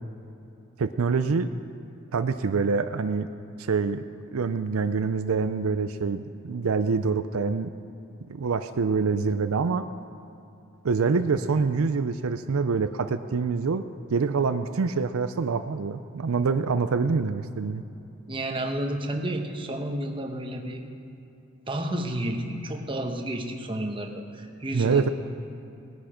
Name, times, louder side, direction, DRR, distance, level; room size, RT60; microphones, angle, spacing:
voice 1, 0.8-1.5 2.1-3.3 3.6-4.0 4.3-7.7 8.3-9.9 10.8-13.8 14.1-17.8 24.7-25.1, right 4 dB, 70° right, 10 dB, 0.5 m, -25 dB
voice 2, 18.3-20.8 21.7-25.1, right 1 dB, 25° right, 3 dB, 1.0 m, -31 dB
19.0 x 10.5 x 5.0 m, 2.8 s
head